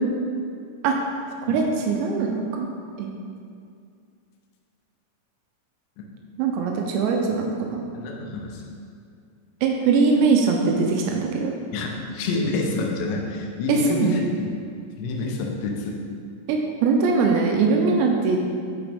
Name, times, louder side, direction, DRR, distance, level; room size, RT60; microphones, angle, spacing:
voice 1, 1.5-2.7 3.0-3.1 6.4-7.8 9.6-11.5 13.7-14.1 16.5-18.4, right 4 dB, 90° right, 1 dB, 2.9 m, -21 dB
voice 2, 7.9-8.7 11.7-14.5 15.0-16.0, left 2 dB, 75° left, 0 dB, 2.8 m, -27 dB
10.5 x 4.9 x 3.4 m, 2.3 s
omnidirectional pair, 5.0 m